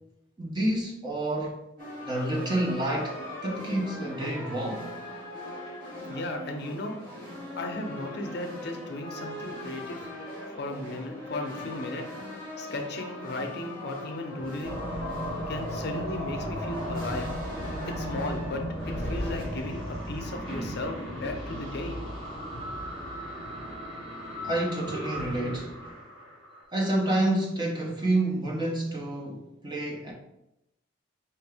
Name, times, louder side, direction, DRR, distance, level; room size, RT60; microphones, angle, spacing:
voice 1, 0.4-1.6 2.1-4.9 17.7-17.9 24.4-25.7 26.7-30.1, right 1 dB, 20° right, 0.8 m, -29 dB
sound 1, 1.8-19.4, left 1 dB, 45° right, 1.4 m, -41 dB
voice 2, 6.1-7.0 7.6-10.1 10.5-12.0 12.6-14.8 15.5-17.3 17.9-18.6 19.0-19.8 20.1-22.0 22.5-22.7 23.5-23.6, left 2 dB, 55° left, 0.6 m, -35 dB
sound 2, 14.6-26.6, equal, 75° right, 1.7 m, -35 dB
5.5 x 2.6 x 3.4 m
head